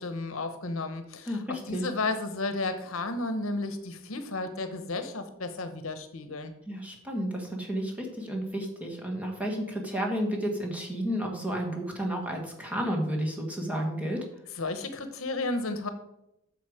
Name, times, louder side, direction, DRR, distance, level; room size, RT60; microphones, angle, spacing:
voice 1, 0.0-6.5 14.6-15.9, left 2 dB, 70° left, 9 dB, 1.0 m, -33 dB
voice 2, 1.3-1.9 6.7-14.2, equal, 5° right, 0 dB, 1.6 m, -31 dB
8.8 x 6.8 x 4.9 m, 0.83 s
head